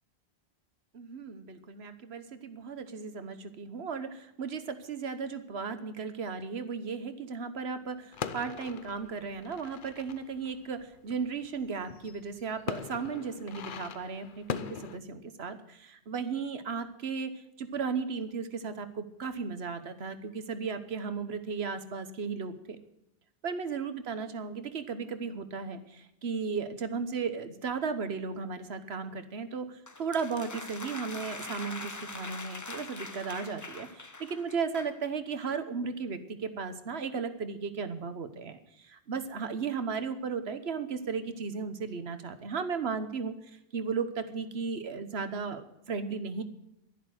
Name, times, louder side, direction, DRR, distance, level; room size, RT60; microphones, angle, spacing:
voice 1, 0.9-17.3 17.6-22.8 23.4-43.3 43.7-46.4, right 5 dB, 70° right, 10 dB, 1.4 m, -35 dB
sound 1, 8.1-15.0, left 7 dB, 55° left, 0.8 m, -41 dB
sound 2, 29.9-35.0, left 3 dB, 20° left, 0.7 m, -43 dB
11.5 x 11.0 x 7.8 m, 0.83 s
omnidirectional pair, 1.1 m